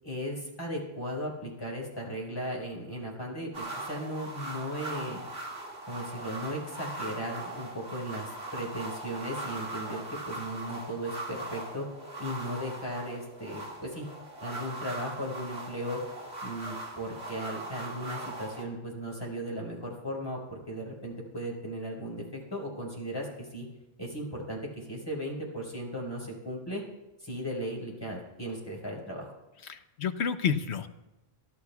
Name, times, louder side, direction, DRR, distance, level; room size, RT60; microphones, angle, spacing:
voice 1, 0.0-5.2 5.9-11.9 12.2-14.1 14.4-16.0 16.4-23.7 24.0-26.8 27.2-29.3, equal, 20° left, -2 dB, 4.7 m, -36 dB
sound 1, 3.5-18.6, right 2 dB, 75° right, 2.5 m, -40 dB
voice 2, 29.6-30.9, left 7 dB, 85° left, 9 dB, 1.2 m, -30 dB
29.5 x 12.0 x 2.4 m, 0.99 s
omnidirectional pair, 1.1 m